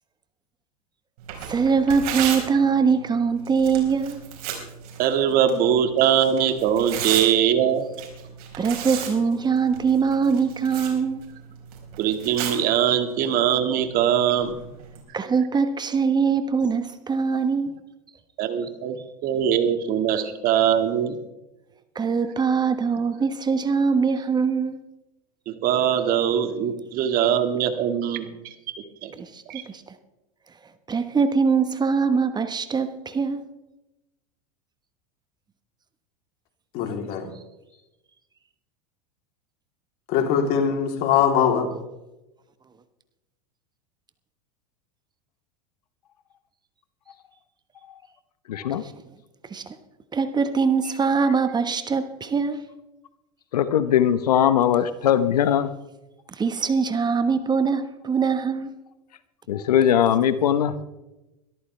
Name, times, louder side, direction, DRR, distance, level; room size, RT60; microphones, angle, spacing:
Tearing, 1.2-15.0, right 8 dB, 70° right, 4.7 m, -36 dB
voice 1, 1.5-4.2 8.6-11.2 15.1-17.7 21.9-24.8 29.3-29.8 30.9-33.4 49.5-49.6 50.1-52.6 56.4-58.7, right 5 dB, 20° right, 1.2 m, -22 dB
voice 2, 5.0-7.9 12.0-14.5 18.4-19.0 19.2-21.2 25.5-28.3 29.0-29.1 29.5-29.6, right 9 dB, 50° right, 1.9 m, -22 dB
voice 3, 36.7-37.3 40.1-41.7, left 8 dB, 55° left, 3.3 m, -22 dB
voice 4, 48.5-48.8 53.5-55.7 59.5-60.8, left 9 dB, 85° left, 1.0 m, -20 dB
22.0 x 13.5 x 3.3 m
hypercardioid pair, 100°, 20 cm